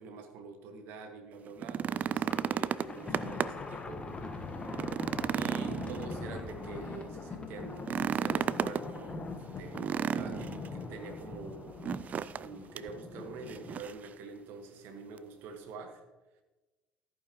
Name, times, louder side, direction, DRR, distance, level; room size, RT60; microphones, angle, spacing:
voice 1, 0.0-4.0 4.3-4.6 5.3-9.3 9.5-11.9 12.4-16.0, right 4 dB, 60° right, 5 dB, 1.5 m, -46 dB
sound 1, 1.5-3.7 4.1-4.2 4.6-6.5 7.8-8.9 9.8-10.7 11.8-12.5 12.8-12.9 13.5-14.1 15.2-15.3, right 8 dB, 40° right, 0.4 m, -33 dB
Thunder, 2.1-13.9, left 3 dB, 25° left, 1.3 m, -42 dB
14.0 x 9.0 x 3.1 m, 1.2 s
hypercardioid pair, 60°, 4 cm